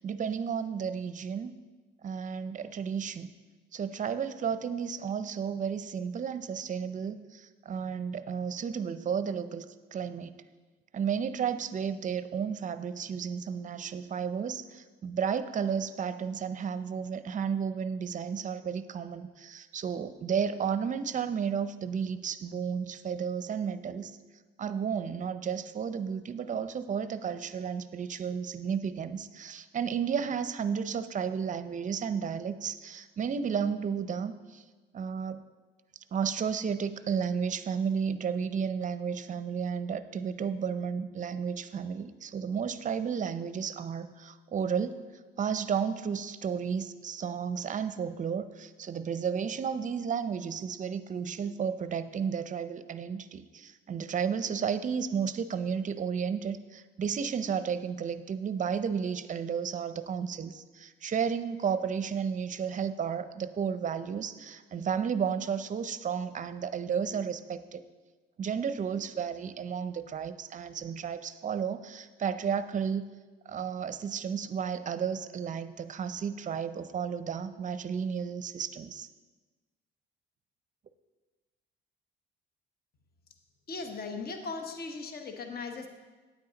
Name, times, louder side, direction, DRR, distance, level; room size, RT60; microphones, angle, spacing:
voice 1, 0.0-1.5 2.0-3.3 3.7-10.4 10.9-24.2 24.6-34.6 34.9-35.4 36.1-45.0 45.4-67.8 68.4-73.0 73.5-79.1, right 7 dB, 40° right, 12 dB, 0.5 m, -33 dB
voice 2, 83.7-85.9, left 4 dB, 50° left, 5 dB, 1.0 m, -38 dB
9.1 x 8.5 x 3.9 m, 1.3 s
cardioid pair, 90°, 20 cm